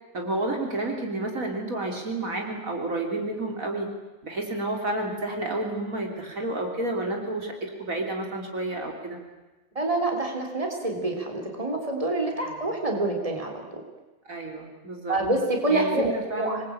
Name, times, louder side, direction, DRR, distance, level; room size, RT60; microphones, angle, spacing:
voice 1, 0.1-3.9 4.2-9.2 12.3-12.6 14.3-15.2 15.7-16.6, right 2 dB, 65° right, 2 dB, 3.7 m, -30 dB
voice 2, 9.8-13.8 15.1-16.6, right 2 dB, 20° right, 3 dB, 3.8 m, -27 dB
26.0 x 21.0 x 8.8 m, 1.2 s
omnidirectional pair, 1.6 m